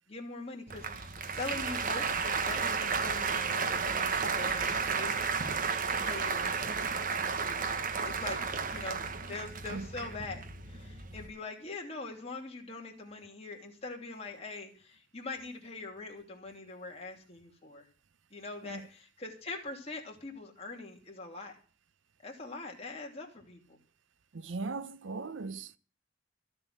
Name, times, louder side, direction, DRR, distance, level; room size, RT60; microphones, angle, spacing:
voice 1, 0.1-5.2 5.9-6.6 8.0-8.4 8.7-17.9 18.3-21.6 22.2-23.8, left 3 dB, 35° left, 3.0 m, -43 dB
Applause, 0.7-11.3, right 5 dB, 45° right, 1.1 m, -33 dB
voice 2, 24.3-25.8, right 3 dB, 75° right, 0.7 m, -39 dB
13.5 x 7.5 x 7.7 m
head